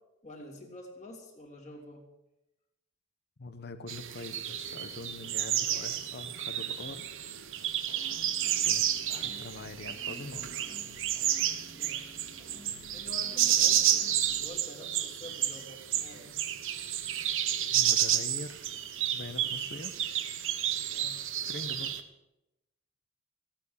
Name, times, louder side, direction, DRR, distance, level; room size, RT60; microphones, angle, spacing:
voice 1, 0.2-2.0 9.1-9.4 11.7-12.1 12.9-16.4 19.3-19.6 20.9-21.2, left 1 dB, 35° left, 0 dB, 3.1 m, -48 dB
voice 2, 3.4-7.1 8.6-10.7 17.7-18.7 19.1-19.9 21.5-21.9, left 2 dB, 50° left, 10 dB, 1.0 m, -44 dB
sound 1, 3.9-22.0, right 11 dB, 65° right, 1.1 m, -31 dB
sound 2, 7.9-14.4, left 1 dB, 5° right, 1.9 m, -53 dB
16.0 x 9.0 x 7.9 m, 0.90 s
head